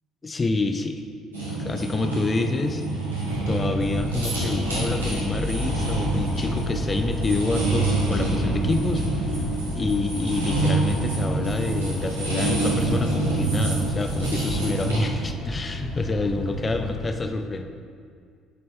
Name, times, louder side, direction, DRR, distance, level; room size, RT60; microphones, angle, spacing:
voice 1, 0.2-1.0 1.5-2.8 3.1-9.4 9.7-17.6, left 3 dB, 25° left, 7 dB, 0.5 m, -27 dB
sound 1, 1.3-15.0, right 2 dB, 85° right, 1.1 m, -27 dB
sound 2, 3.3-17.1, left 1 dB, 65° left, 1.2 m, -32 dB
9.6 x 4.4 x 3.2 m, 2.1 s
figure-of-eight pair, 55°, 0 cm